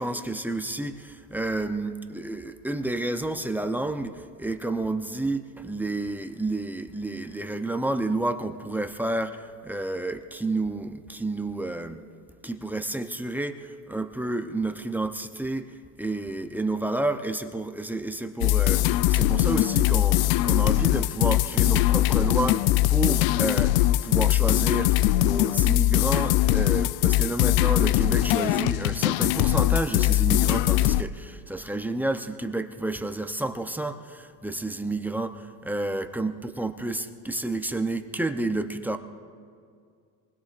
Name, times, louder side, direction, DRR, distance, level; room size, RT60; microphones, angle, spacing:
voice 1, 0.0-12.0 12.4-15.7 16.0-22.6 22.9-39.0, right 2 dB, 5° right, 6 dB, 0.6 m, -30 dB
sound 1, 18.4-31.0, left 15 dB, 80° left, 0.5 m, -21 dB
25.5 x 20.0 x 2.5 m, 2.2 s
supercardioid pair, 110°, 46 cm